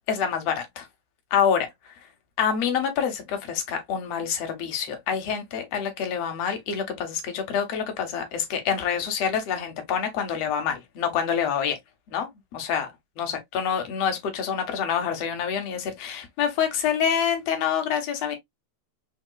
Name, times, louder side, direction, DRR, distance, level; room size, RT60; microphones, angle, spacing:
voice 1, 0.1-0.9 1.3-1.7 2.4-11.8 12.1-12.9 13.2-18.4, left 7 dB, 65° left, 1.9 m, -27 dB
4.7 x 3.5 x 2.2 m
omnidirectional pair, 3.4 m